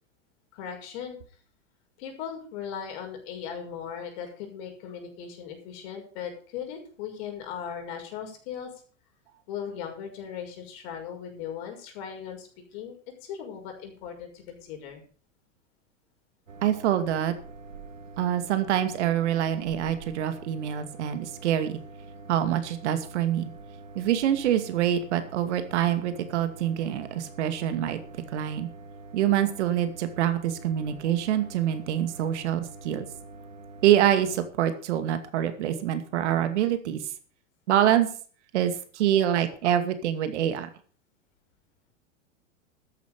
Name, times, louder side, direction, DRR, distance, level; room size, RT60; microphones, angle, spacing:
voice 1, 0.5-1.2 2.0-8.7 9.5-15.0, left 8 dB, 55° left, 4 dB, 6.1 m, -38 dB
sound 1, 16.5-34.5, right 3 dB, 85° right, 2.2 m, -45 dB
voice 2, 16.6-17.3 18.2-21.8 22.3-23.5 23.9-28.0 28.3-28.7 29.1-33.1 33.8-37.0 37.7-38.1 38.5-40.7, right 11 dB, 65° right, 10 dB, 2.5 m, -25 dB
13.5 x 10.5 x 5.1 m, 0.41 s
hypercardioid pair, 100°, 38 cm